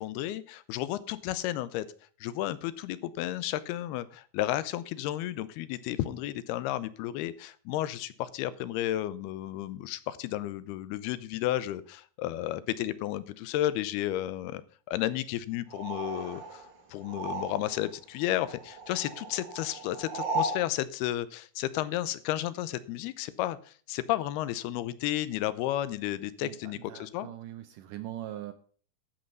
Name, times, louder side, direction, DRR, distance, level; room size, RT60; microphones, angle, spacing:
voice 1, 0.0-1.9 2.2-14.6 14.9-16.6 16.9-27.3, left 14 dB, 90° left, 2.8 m, -32 dB
sound 1, 15.7-17.9 18.2-20.7, right 2 dB, 60° right, 1.1 m, -36 dB
voice 2, 26.4-28.5, right 12 dB, 80° right, 1.9 m, -41 dB
12.0 x 8.0 x 5.3 m
omnidirectional pair, 4.5 m